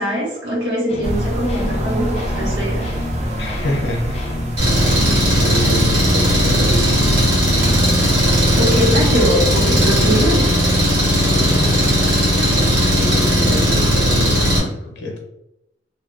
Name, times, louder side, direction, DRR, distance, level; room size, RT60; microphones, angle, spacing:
voice 1, 0.0-2.9 8.5-10.4, equal, 85° right, -5 dB, 1.1 m, -21 dB
sound 1, 0.9-13.3, left 1 dB, 35° left, 0.3 m, -29 dB
sound 2, 1.0-8.6, equal, 35° right, 0.4 m, -27 dB
voice 2, 3.4-4.4 5.4-7.1 11.3-12.0 12.9-15.2, left 1 dB, 65° left, 0 dB, 0.7 m, -27 dB
Engine, 4.6-14.6, equal, 65° right, 1.3 m, -16 dB
2.6 x 2.2 x 2.5 m, 0.85 s
head